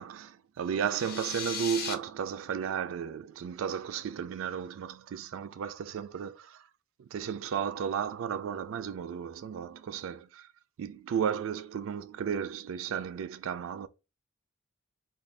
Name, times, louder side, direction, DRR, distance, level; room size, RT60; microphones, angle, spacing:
voice 1, 0.0-6.7 7.0-10.5 10.8-13.9, right 8 dB, 75° right, 0.3 m, -34 dB
sound 1, 0.7-1.9, left 5 dB, 50° left, 0.6 m, -37 dB
2.6 x 2.2 x 3.3 m
head